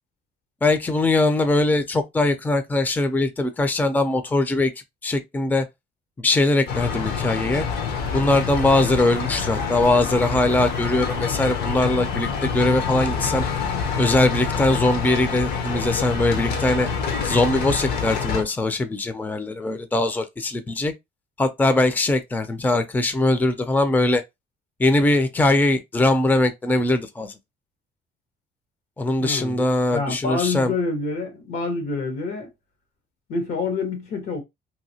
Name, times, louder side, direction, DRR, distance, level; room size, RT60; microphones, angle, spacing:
voice 1, 0.6-4.7 5.0-5.7 6.2-7.7 8.1-13.4 14.0-16.9 17.2-20.9 21.4-24.2 24.8-27.3 29.0-30.7, left 2 dB, 10° left, 0.4 m, -21 dB
sound 1, 6.7-18.4, left 6 dB, 70° left, 0.7 m, -26 dB
voice 2, 29.2-32.5 33.3-34.4, left 3 dB, 85° left, 1.3 m, -27 dB
2.7 x 2.6 x 2.7 m
cardioid pair, 110°, 17 cm